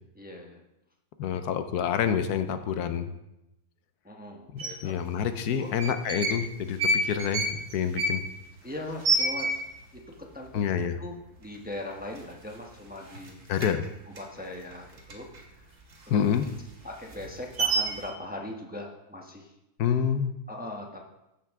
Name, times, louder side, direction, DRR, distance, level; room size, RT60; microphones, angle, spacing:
voice 1, 0.2-0.6 1.5-1.6 4.0-5.2 5.5-5.7 8.6-9.6 9.9-10.6 11.0-13.4 14.2-15.3 16.1-16.4 16.8-19.5 20.5-21.0, left 1 dB, 5° right, 0 dB, 0.8 m, -40 dB
voice 2, 1.2-3.1 4.5-8.2 10.5-11.0 13.5-13.8 16.1-16.5 19.8-20.3, left 8 dB, 85° left, 9 dB, 1.2 m, -28 dB
sound 1, 4.6-4.7 5.6-6.4 6.7-9.9 10.3-10.4 10.6-11.1 11.5-11.7 12.0-12.8 13.1-15.4 15.8-18.1, right 2 dB, 50° right, 1.5 m, -29 dB
14.5 x 5.6 x 3.6 m, 0.89 s
omnidirectional pair, 1.6 m